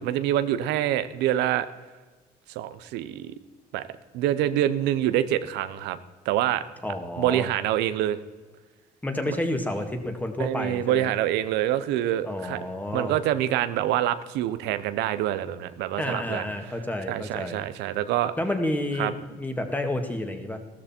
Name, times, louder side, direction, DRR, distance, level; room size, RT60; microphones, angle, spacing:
voice 1, 0.0-1.7 2.5-3.3 3.7-3.9 4.1-6.0 6.2-6.6 7.2-8.2 9.3-9.4 10.4-12.6 12.9-16.4 17.1-18.3 19.0-19.1, right 12 dB, 90° right, 12 dB, 0.8 m, -26 dB
voice 2, 6.8-7.5 9.0-11.1 12.2-13.2 16.0-17.6 18.4-20.6, left 1 dB, 10° left, 5 dB, 2.0 m, -30 dB
15.0 x 13.5 x 4.4 m, 1.3 s
cardioid pair, 110°, 17 cm